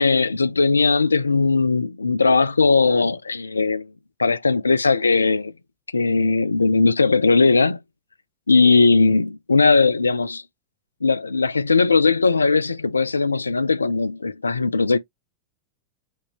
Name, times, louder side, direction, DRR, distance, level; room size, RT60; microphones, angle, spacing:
voice 1, 0.0-3.9 4.2-5.5 5.9-7.8 8.5-10.4 11.0-15.0, left 4 dB, 80° left, 0.4 m, -18 dB
5.1 x 2.7 x 3.1 m
figure-of-eight pair, 90°, 0 cm